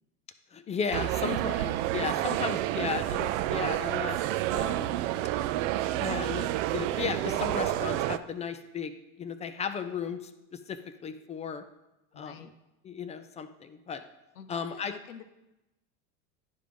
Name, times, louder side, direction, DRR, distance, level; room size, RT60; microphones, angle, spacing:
voice 1, 0.5-4.2 4.5-5.0 5.9-6.5 6.7-11.6 12.2-12.3 12.8-14.0 14.5-14.9, left 6 dB, 20° left, 9 dB, 0.3 m, -35 dB
sound 1, 0.9-8.2, right 14 dB, 60° right, 0.5 m, -29 dB
voice 2, 12.1-12.5 14.3-15.2, left 7 dB, 85° left, 8 dB, 0.9 m, -48 dB
10.5 x 3.7 x 5.1 m, 0.96 s
hypercardioid pair, 90°, 43 cm